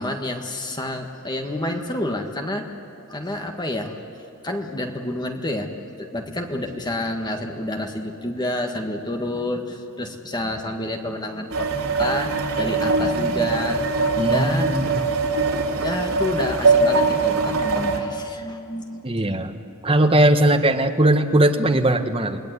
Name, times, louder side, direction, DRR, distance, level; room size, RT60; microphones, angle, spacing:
voice 1, 0.0-2.7 3.1-4.0 4.4-5.7 6.0-11.7 12.0-13.8 14.3-14.8 15.8-19.0, left 1 dB, 20° left, 4 dB, 1.7 m, -28 dB
sound 1, 11.5-18.0, right 3 dB, 75° right, 3.6 m, -22 dB
voice 2, 14.2-15.0 19.0-19.5 19.8-22.4, right 1 dB, 25° right, 5 dB, 1.4 m, -19 dB
28.0 x 20.0 x 9.7 m, 2.8 s
head